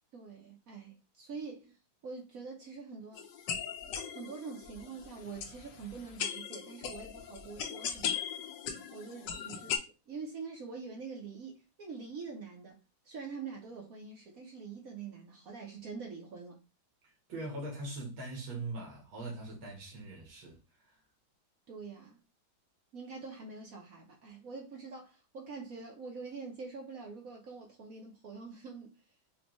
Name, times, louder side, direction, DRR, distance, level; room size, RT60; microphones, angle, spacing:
voice 1, 0.1-1.8 2.0-3.3 3.8-8.2 8.9-12.8 13.0-16.6 21.7-22.2 22.9-29.1, right 5 dB, 60° right, 1.0 m, -45 dB
sound 1, 3.1-9.8, left 8 dB, 70° left, 1.2 m, -39 dB
voice 2, 17.0-21.0, right 2 dB, 75° right, 1.9 m, -42 dB
5.2 x 2.3 x 3.0 m
omnidirectional pair, 2.2 m